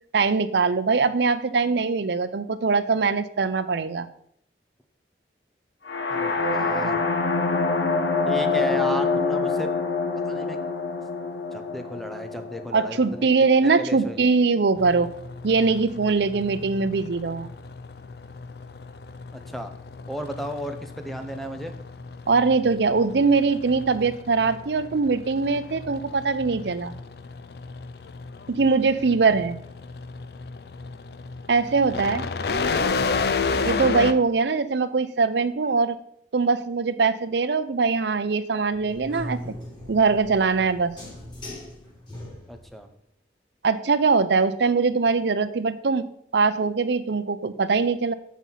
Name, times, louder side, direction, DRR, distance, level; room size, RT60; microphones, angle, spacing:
voice 1, 0.1-4.1 12.7-15.1 15.4-17.5 22.3-26.9 28.5-29.6 31.5-32.3 33.6-36.0 36.3-39.4 39.9-40.9 43.6-48.1, right 4 dB, 70° right, 12 dB, 0.6 m, -22 dB
sound 1, 5.9-13.7, left 4 dB, 75° left, 1.2 m, -26 dB
voice 2, 6.1-7.1 8.3-9.7 10.2-10.6 11.5-13.3 13.6-14.2 19.3-19.7 20.1-21.7 32.7-32.9 42.5-42.9, equal, ahead, 7 dB, 0.7 m, -34 dB
sound 2, 14.8-34.1, left 4 dB, 60° left, 0.5 m, -33 dB
sound 3, 38.7-42.8, left 1 dB, 25° left, 3.2 m, -39 dB
7.3 x 6.1 x 5.6 m, 0.70 s
head